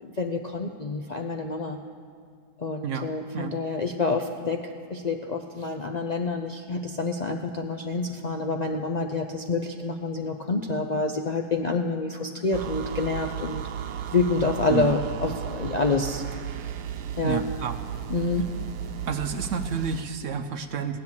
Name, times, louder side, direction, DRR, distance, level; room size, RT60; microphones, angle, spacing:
voice 1, 0.0-1.8 2.6-13.7 14.1-16.2 17.2-17.5 18.1-18.5, left 3 dB, 65° left, 3 dB, 0.4 m, -28 dB
sound 1, 12.5-20.1, right 9 dB, 90° right, 1.2 m, -34 dB
voice 2, 14.7-15.0 17.2-17.8 19.0-21.0, right 6 dB, 60° right, 8 dB, 0.9 m, -30 dB
16.5 x 10.5 x 7.2 m, 2.1 s
omnidirectional pair, 1.6 m